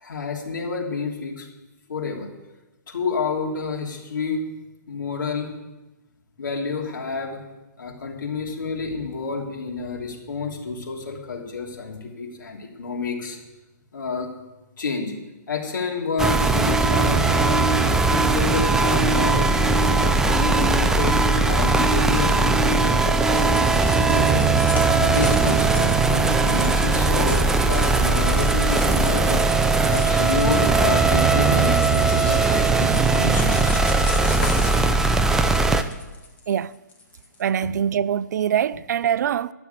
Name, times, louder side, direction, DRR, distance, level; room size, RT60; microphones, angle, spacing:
voice 1, 0.0-1.5 1.9-2.3 2.9-4.4 4.9-5.5 6.4-7.4 7.8-13.4 13.9-14.3 14.8-15.1 15.5-17.6 17.9-19.5 20.0-24.4 24.9-29.4 29.9-33.8, left 4 dB, 90° left, 3.1 m, -29 dB
sound 1, 16.2-35.8, right 3 dB, 5° right, 0.5 m, -19 dB
sound 2, 23.3-37.4, left 3 dB, 15° left, 1.5 m, -38 dB
voice 2, 37.4-39.5, right 9 dB, 65° right, 0.5 m, -23 dB
12.5 x 7.1 x 9.4 m
hypercardioid pair, 150°, 10 cm